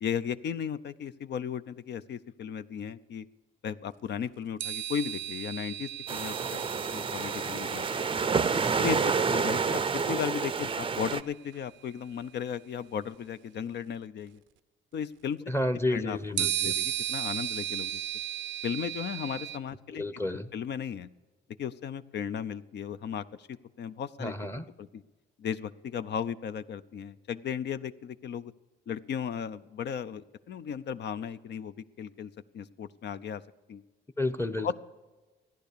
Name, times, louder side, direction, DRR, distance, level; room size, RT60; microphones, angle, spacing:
voice 1, 0.0-3.3 3.6-7.9 8.8-9.8 10.1-14.4 14.9-15.4 15.9-18.0 18.6-21.1 21.6-24.3 24.8-25.0 25.4-28.5 28.9-33.4 33.7-33.8 34.6-34.7, left 8 dB, 60° left, 13 dB, 0.6 m, -36 dB
sound 1, 4.6-10.2 11.5-11.6 16.4-19.6, right 13 dB, 70° right, 0.5 m, -36 dB
sound 2, 6.1-11.2, right 5 dB, 25° right, 0.5 m, -29 dB
voice 2, 15.5-16.7 19.9-20.5 24.2-24.7 34.2-34.7, left 1 dB, 10° left, 12 dB, 0.8 m, -31 dB
15.0 x 10.5 x 6.8 m, 1.2 s
cardioid pair, 90°, 20 cm